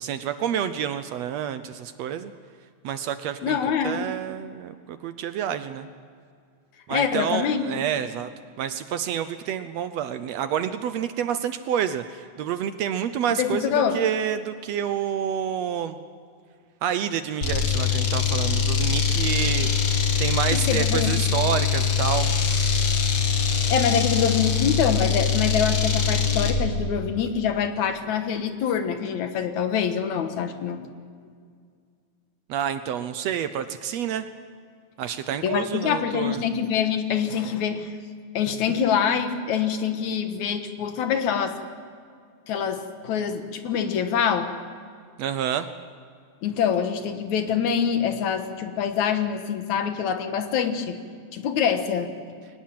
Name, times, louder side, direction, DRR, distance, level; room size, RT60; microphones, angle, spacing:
voice 1, 0.0-2.3 2.8-5.9 6.9-8.3 8.6-16.0 16.8-19.7 20.2-22.3 32.5-34.3 35.0-36.4 45.2-45.7, right 9 dB, 70° right, 11 dB, 1.7 m, -28 dB
voice 2, 3.4-4.0 6.9-7.8 13.3-14.0 20.5-21.2 23.7-30.8 35.4-37.9 38.3-41.6 42.5-44.5 46.4-51.0 51.3-52.1, left 7 dB, 75° left, 7 dB, 2.7 m, -25 dB
sound 1, 17.4-26.6, left 6 dB, 55° left, 2.8 m, -23 dB
22.5 x 19.0 x 7.7 m, 2.2 s
omnidirectional pair, 3.5 m